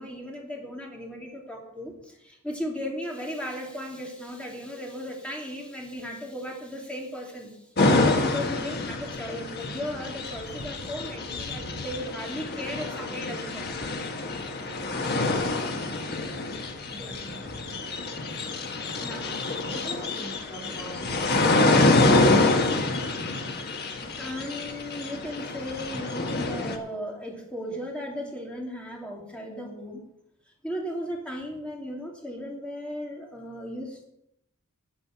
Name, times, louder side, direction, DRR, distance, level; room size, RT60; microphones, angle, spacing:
voice 1, 0.0-7.6 8.2-13.9 14.5-15.0 17.0-17.2 19.0-19.3 23.8-23.9 24.2-30.0 30.6-34.0, equal, 5° left, -1 dB, 2.7 m, -36 dB
sound 1, 7.8-26.8, left 2 dB, 50° left, 1.4 m, -26 dB
voice 2, 14.8-16.3 16.9-17.8 19.7-23.1, right 1 dB, 25° left, -2 dB, 4.0 m, -43 dB
12.5 x 7.9 x 5.9 m, 0.79 s
head